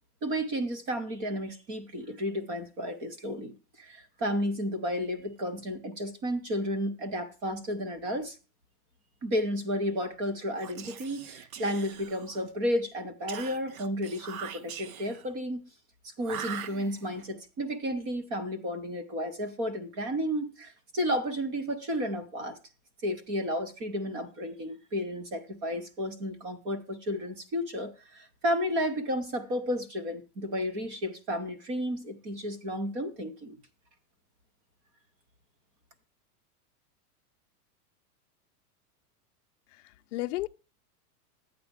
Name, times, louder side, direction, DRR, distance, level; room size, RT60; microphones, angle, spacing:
voice 1, 0.2-8.4 9.2-15.6 16.2-22.6 23.0-33.6, equal, 15° right, 0.4 m, -32 dB
Whispering, 10.6-12.5 13.3-15.3 16.2-17.3, right 8 dB, 65° right, 0.7 m, -42 dB
voice 2, 39.7-40.5, left 17 dB, 55° left, 0.6 m, -34 dB
12.0 x 8.9 x 3.4 m
supercardioid pair, 170°, 46 cm